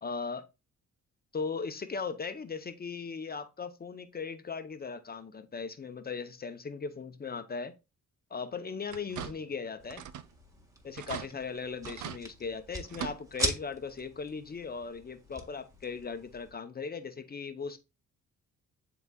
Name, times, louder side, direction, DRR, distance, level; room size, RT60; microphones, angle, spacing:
voice 1, 0.0-0.4 1.3-7.7 8.3-10.0 10.8-17.8, left 5 dB, 30° left, 0.8 m, -38 dB
sound 1, 8.9-9.6 9.9-10.3 10.6-10.7 11.0-11.3 11.8-12.2 12.8-13.5 13.9-14.0 15.4-15.5 16.0-16.1, right 9 dB, 75° right, 0.6 m, -40 dB
sound 2, 9.8-16.5, right 1 dB, 10° right, 1.6 m, -41 dB
11.0 x 3.9 x 2.3 m
cardioid pair, 90°, 30 cm